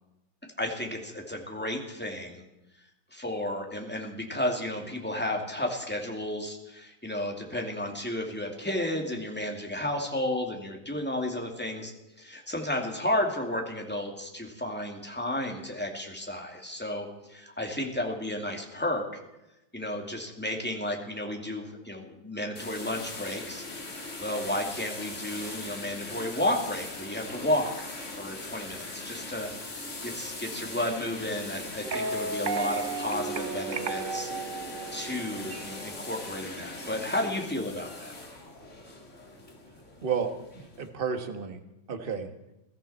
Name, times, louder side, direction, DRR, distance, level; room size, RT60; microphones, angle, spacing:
voice 1, 0.6-2.4 3.1-11.9 12.2-19.2 19.7-23.6 24.2-27.9 28.1-34.3 34.9-38.1, left 1 dB, 5° left, 1 dB, 2.3 m, -32 dB
sound 1, 22.6-40.9, left 2 dB, 35° left, 2.6 m, -40 dB
sound 2, 31.8-35.9, right 4 dB, 65° right, 0.5 m, -34 dB
voice 2, 40.0-41.6 41.9-42.3, right 6 dB, 30° right, 7 dB, 1.4 m, -32 dB
22.0 x 14.0 x 4.3 m, 0.94 s
omnidirectional pair, 2.1 m